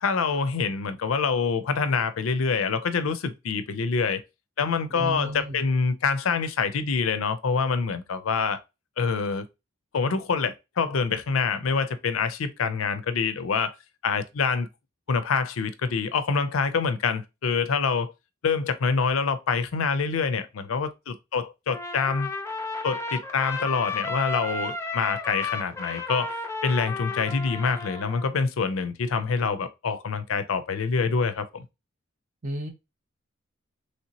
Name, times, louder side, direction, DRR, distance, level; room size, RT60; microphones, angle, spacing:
voice 1, 0.0-4.2 4.6-8.6 9.0-9.5 9.9-13.8 14.0-14.7 15.1-18.1 18.4-22.3 22.8-26.3 26.6-31.6, left 5 dB, 80° left, 0.5 m, -26 dB
voice 2, 4.9-5.7 32.4-32.7, equal, 40° right, 0.7 m, -32 dB
Trumpet, 21.7-28.3, left 3 dB, 15° left, 0.4 m, -33 dB
3.1 x 2.8 x 2.7 m
head